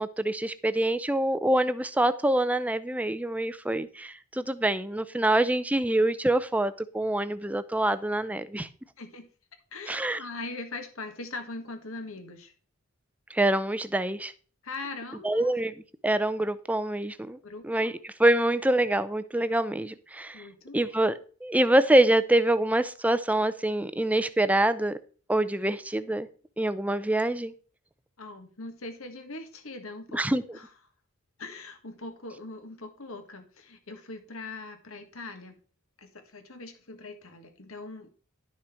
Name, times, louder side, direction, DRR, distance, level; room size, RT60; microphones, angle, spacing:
voice 1, 0.0-8.7 9.9-10.2 13.3-14.3 15.2-15.7 16.0-17.4 17.6-20.4 20.7-21.1 21.4-25.0 25.3-26.3 26.6-27.5 30.1-30.4, right 1 dB, 5° right, 0.5 m, -25 dB
voice 2, 9.7-12.5 14.6-15.5 17.4-17.9 20.3-20.9 28.2-30.2 30.5-30.7 31.4-35.6 36.0-38.1, left 3 dB, 65° left, 1.7 m, -41 dB
11.5 x 6.1 x 4.4 m
head